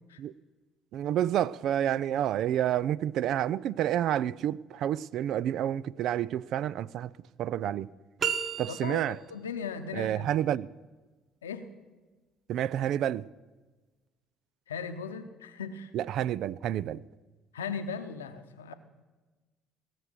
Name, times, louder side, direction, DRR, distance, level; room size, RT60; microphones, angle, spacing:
voice 1, 0.9-7.1 7.4-7.9 8.6-9.2 9.9-10.7 12.5-13.3 15.9-17.0, right 11 dB, 60° right, 0.3 m, -29 dB
sound 1, 8.2-9.3, right 7 dB, 45° right, 0.8 m, -32 dB
voice 2, 8.7-10.3 11.4-11.6 14.7-15.9 17.5-18.7, left 6 dB, 85° left, 0.8 m, -38 dB
18.5 x 6.8 x 7.7 m
hypercardioid pair, 55°, 0 cm